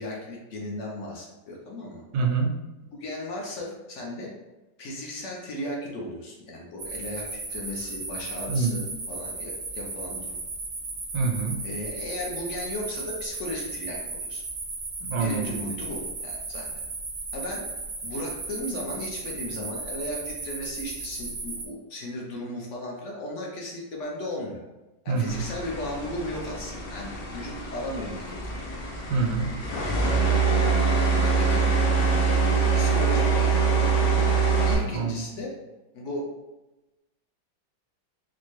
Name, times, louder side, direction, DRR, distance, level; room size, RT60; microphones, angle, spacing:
voice 1, 0.0-2.0 3.0-4.3 4.8-10.4 11.6-14.4 15.1-16.7 17.3-17.6 18.0-24.6 25.0-28.5 30.1-30.8 31.2-31.7 32.7-34.2 34.5-35.5 35.9-36.3, left 1 dB, 65° left, -2 dB, 0.7 m, -36 dB
voice 2, 2.1-2.5 8.5-8.8 11.1-11.6 15.0-15.7 25.1-25.5 29.1-29.5 34.9-35.2, right 4 dB, 80° right, 3 dB, 1.2 m, -26 dB
sound 1, 6.8-21.6, right 3 dB, 65° right, 0.6 m, -35 dB
sound 2, 25.3-34.7, right 5 dB, 90° left, 1.4 m, -24 dB
4.2 x 2.1 x 3.1 m, 1.0 s
omnidirectional pair, 1.9 m